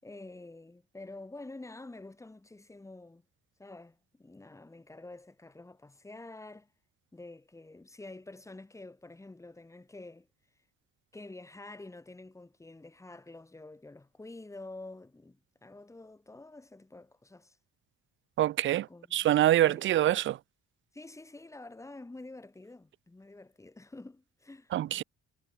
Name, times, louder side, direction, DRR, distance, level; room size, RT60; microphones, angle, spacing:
voice 1, 0.0-3.3 3.6-6.7 7.1-10.3 11.1-17.6 18.9-19.3 19.6-19.9 20.9-25.0, left 2 dB, 10° left, 5.3 m, -48 dB
voice 2, 18.4-20.4 24.7-25.0, right 13 dB, 40° right, 0.4 m, -25 dB
cardioid pair, 175°, 30 cm